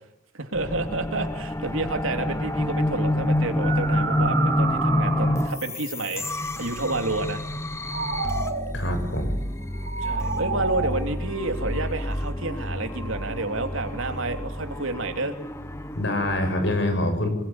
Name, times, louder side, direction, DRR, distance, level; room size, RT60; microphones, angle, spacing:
voice 1, 0.3-7.4 10.0-15.4, right 2 dB, 75° right, 6 dB, 3.2 m, -30 dB
sound 1, 0.5-16.7, left 1 dB, 15° left, 1.2 m, -28 dB
sound 2, 2.4-2.6 3.4-5.7 7.6-8.8 9.7-10.9, right 5 dB, 50° right, 4.8 m, -30 dB
voice 2, 8.7-9.4 15.9-17.3, left 1 dB, 60° left, 7 dB, 7.0 m, -25 dB
26.5 x 21.5 x 9.7 m, 0.85 s
head